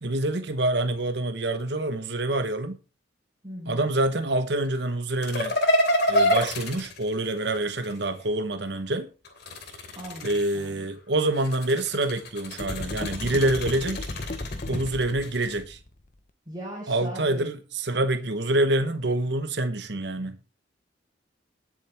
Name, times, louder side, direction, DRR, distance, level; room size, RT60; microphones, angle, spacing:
voice 1, 0.0-2.8 3.7-5.6 6.1-9.1 10.2-14.1 14.7-15.8 16.9-20.4, right 2 dB, 60° right, 1.1 m, -26 dB
voice 2, 3.4-3.9 9.9-10.9 16.5-17.5, right 1 dB, 20° right, 4.2 m, -39 dB
sound 1, 5.2-8.0 9.2-10.8 11.3-15.6, equal, 60° left, 3.0 m, -28 dB
sound 2, 12.6-16.0, left 2 dB, 40° left, 0.8 m, -35 dB
19.5 x 7.6 x 3.5 m
head